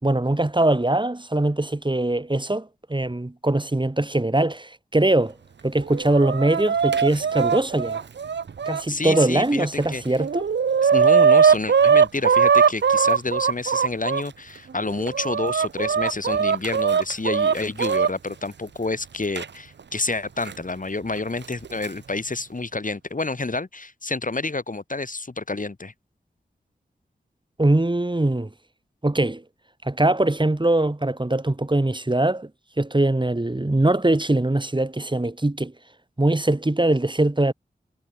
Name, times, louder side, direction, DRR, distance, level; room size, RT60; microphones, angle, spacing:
voice 1, 0.0-5.3 5.6-8.0 8.7-10.4 27.6-28.5 29.0-29.4 29.8-32.5 32.8-35.7 36.2-37.5, right 1 dB, 25° right, 5.1 m, -22 dB
Chicken rooster, 5.8-9.3 9.8-9.9 10.2-14.2 14.8-18.1 19.4-19.5 20.5-20.6 21.5-21.9, right 6 dB, 90° right, 1.3 m, -20 dB
voice 2, 8.9-10.0 10.8-25.9, left 3 dB, 50° left, 6.0 m, -29 dB
cardioid pair, 40°, 18 cm